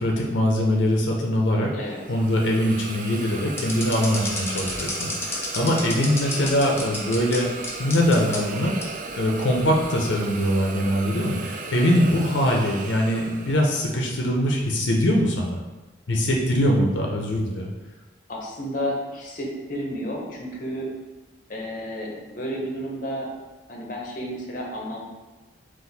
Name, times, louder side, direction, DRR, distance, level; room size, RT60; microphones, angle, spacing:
voice 1, 0.0-1.7 2.1-7.5 7.8-8.8 9.2-15.6 16.1-17.7, equal, 85° left, 0 dB, 0.6 m, -22 dB
Hiss, 1.8-14.0, right 3 dB, 45° right, 0.3 m, -36 dB
sound 1, 3.6-7.4 7.6-8.4 8.8-8.9 9.6-9.8, left 2 dB, 15° left, 0.6 m, -30 dB
voice 2, 18.3-20.9 21.5-23.3 23.7-25.0, equal, 45° left, -1 dB, 0.7 m, -31 dB
4.1 x 2.5 x 4.0 m, 1.2 s
head